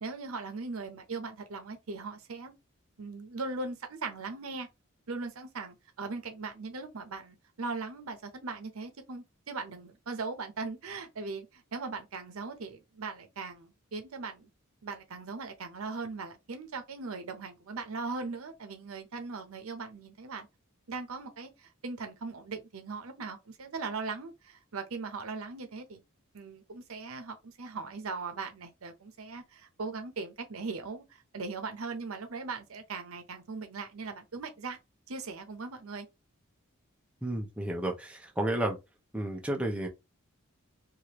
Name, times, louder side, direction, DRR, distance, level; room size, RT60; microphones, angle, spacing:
voice 1, 0.0-2.5 3.0-4.7 5.1-14.5 14.8-20.5 20.9-26.0 26.3-34.8 35.1-36.1, right 4 dB, 75° right, 0.7 m, -39 dB
voice 2, 37.2-38.8 39.1-39.9, right 1 dB, 5° right, 0.6 m, -32 dB
3.1 x 2.5 x 2.9 m
head